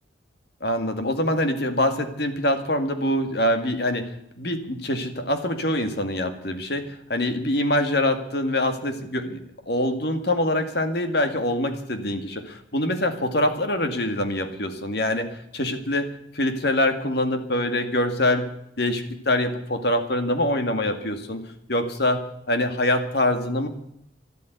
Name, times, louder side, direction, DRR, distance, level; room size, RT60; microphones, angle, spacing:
voice 1, 0.6-4.1 4.4-9.4 9.7-16.1 16.3-18.4 18.8-21.4 21.7-22.2 22.5-23.7, left 1 dB, 60° left, 7 dB, 2.1 m, -24 dB
12.5 x 12.0 x 9.4 m, 0.76 s
head